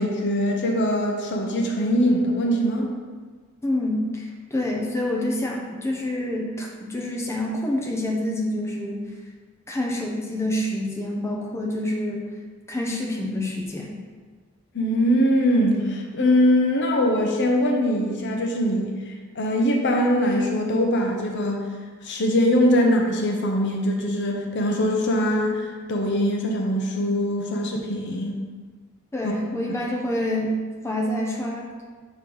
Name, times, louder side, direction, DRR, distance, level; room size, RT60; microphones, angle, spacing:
voice 1, 0.0-2.9 14.7-21.7 22.0-28.4 29.2-29.3, equal, 55° left, 1 dB, 0.8 m, -22 dB
voice 2, 3.6-9.0 9.7-12.3 12.7-14.0 29.1-30.6 30.8-31.7, left 1 dB, 15° left, -2 dB, 0.7 m, -27 dB
6.3 x 3.2 x 5.4 m, 1.5 s
head